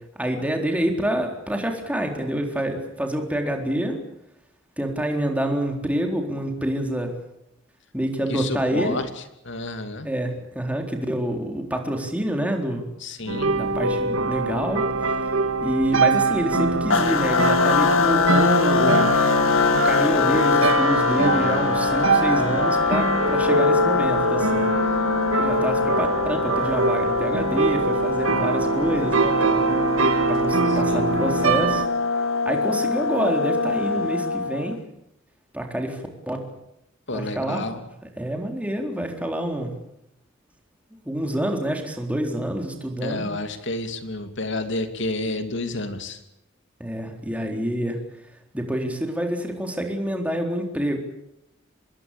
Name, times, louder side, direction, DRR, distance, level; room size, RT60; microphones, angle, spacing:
voice 1, 0.2-4.0 4.8-7.1 7.9-9.0 10.0-12.8 13.5-14.8 15.6-19.1 19.8-24.7 25.3-29.7 30.3-31.9 32.5-34.8 35.5-36.4 37.1-37.6 38.0-39.7 41.1-43.3 46.8-48.0 48.5-51.0, right 1 dB, 5° right, 3 dB, 4.0 m, -27 dB
voice 2, 8.3-9.1 9.4-10.1 13.0-13.5 30.9-31.1 37.1-37.8 43.0-46.2, left 2 dB, 60° left, 8 dB, 2.9 m, -30 dB
sound 1, 13.3-31.9, right 3 dB, 90° right, 2.0 m, -23 dB
sound 2, 16.9-34.8, left 5 dB, 80° left, 1.9 m, -23 dB
26.0 x 21.0 x 8.5 m, 0.82 s
head